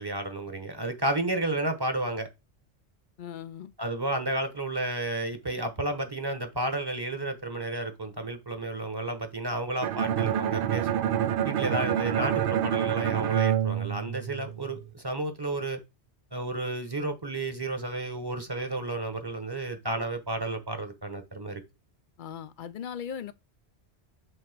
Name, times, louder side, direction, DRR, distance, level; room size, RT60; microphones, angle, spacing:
voice 1, 0.0-2.3 3.8-11.0 11.4-15.8 16.3-21.6, right 2 dB, 20° right, 1.1 m, -32 dB
voice 2, 3.2-3.7 12.8-12.9 22.2-23.3, left 8 dB, 55° left, 0.6 m, -38 dB
Bowed string instrument, 9.8-14.7, right 10 dB, 60° right, 0.7 m, -27 dB
8.0 x 3.0 x 5.9 m
omnidirectional pair, 1.1 m